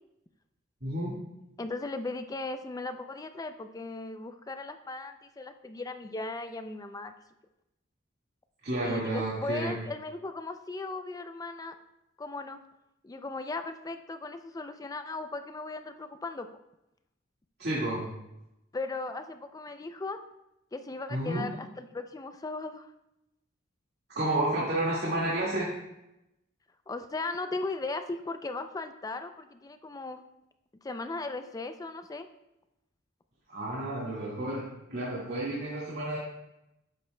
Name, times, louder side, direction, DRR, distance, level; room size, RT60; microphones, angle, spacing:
voice 1, 0.8-1.2 8.6-9.7 17.6-18.0 21.1-21.4 24.1-25.7 33.5-34.7 34.9-36.2, right 1 dB, 55° right, -6 dB, 1.9 m, -30 dB
voice 2, 1.6-7.1 8.8-11.7 12.2-12.6 13.0-16.5 18.7-20.2 20.7-22.9 26.9-30.2 30.8-32.3, left 3 dB, 20° left, 9 dB, 0.4 m, -37 dB
11.5 x 8.3 x 2.2 m, 0.88 s
head